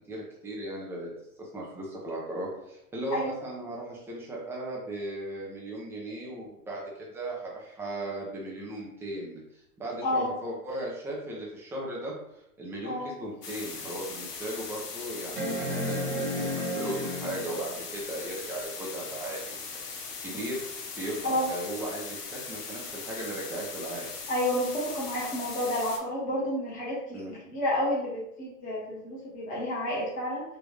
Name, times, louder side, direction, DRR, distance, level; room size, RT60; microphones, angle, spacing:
voice 1, 0.1-1.1 1.4-12.1 12.6-19.5 20.2-20.6 21.0-24.1 27.1-27.3, right 1 dB, 5° right, -4 dB, 0.6 m, -37 dB
sound 1, 13.2-13.3 13.9-14.0 15.4-17.8 19.5-19.6, equal, 35° right, 1.0 m, -32 dB
sound 2, 13.4-26.0, left 5 dB, 90° left, 0.9 m, -40 dB
voice 2, 24.3-30.4, left 1 dB, 15° left, -6 dB, 1.2 m, -30 dB
3.5 x 2.5 x 3.2 m, 0.79 s
hypercardioid pair, 135°, 45 cm